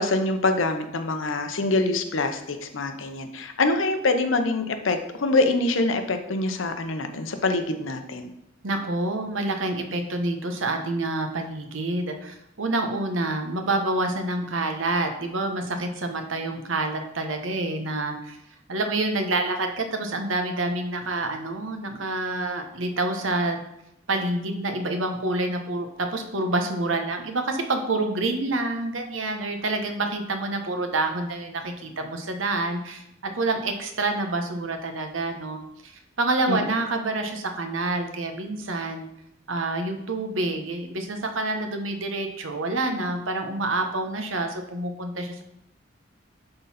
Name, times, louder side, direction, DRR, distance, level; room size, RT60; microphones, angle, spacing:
voice 1, 0.0-8.3 36.5-36.6, left 2 dB, 85° left, 7 dB, 0.8 m, -25 dB
voice 2, 8.6-18.4 18.7-23.6 24.1-33.0 33.4-39.1 39.5-45.4, right 2 dB, 85° right, 5 dB, 1.1 m, -27 dB
10.5 x 3.9 x 4.2 m, 0.81 s
head